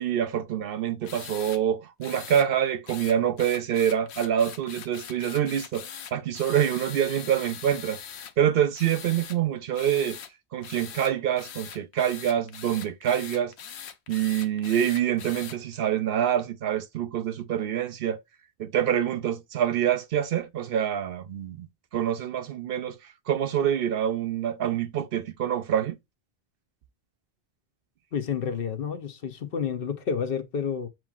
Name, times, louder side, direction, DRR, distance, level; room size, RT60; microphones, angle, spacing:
voice 1, 0.0-8.0 8.4-10.2 10.5-13.5 14.1-18.2 18.6-21.7 21.9-23.0 23.3-26.0, right 9 dB, 65° right, 0.7 m, -26 dB
sound 1, 1.1-1.6 2.0-2.5 2.9-8.3 8.7-9.4 9.7-10.3 10.6-15.6, left 8 dB, 90° left, 0.9 m, -42 dB
voice 2, 28.1-30.9, left 7 dB, 60° left, 0.9 m, -30 dB
7.2 x 3.1 x 2.4 m
omnidirectional pair, 1.1 m